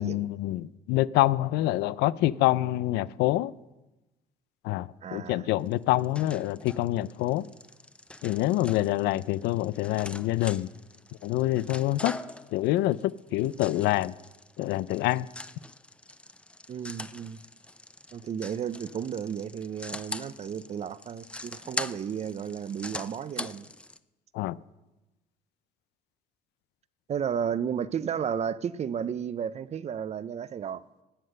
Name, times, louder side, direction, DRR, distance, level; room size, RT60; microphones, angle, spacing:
voice 1, 0.0-3.5 4.6-7.4 8.2-10.7 11.2-12.2 12.5-14.1 14.6-15.3 24.3-24.6, left 16 dB, 90° left, 0.5 m, -26 dB
voice 2, 5.0-5.5 16.7-17.4 18.1-23.7 27.1-30.8, right 8 dB, 40° right, 0.6 m, -33 dB
sound 1, 5.7-24.0, left 1 dB, 5° left, 0.6 m, -42 dB
18.5 x 7.8 x 6.5 m
cardioid pair, 110°, 17 cm